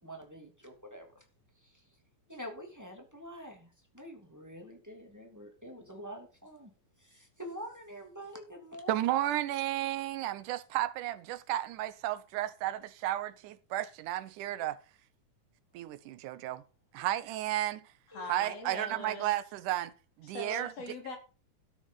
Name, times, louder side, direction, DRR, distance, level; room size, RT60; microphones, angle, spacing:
voice 1, 0.0-1.2 1.6-1.8 2.3-6.7 7.0-9.0 18.1-18.2, equal, 5° right, 2.6 m, -46 dB
voice 2, 8.9-14.8 15.7-16.6 16.9-17.8 18.3-19.9 20.2-20.7, right 14 dB, 85° right, 2.4 m, -33 dB
voice 3, 18.1-19.3 20.2-21.2, left 2 dB, 55° left, 4.0 m, -41 dB
13.0 x 7.1 x 5.6 m
omnidirectional pair, 3.5 m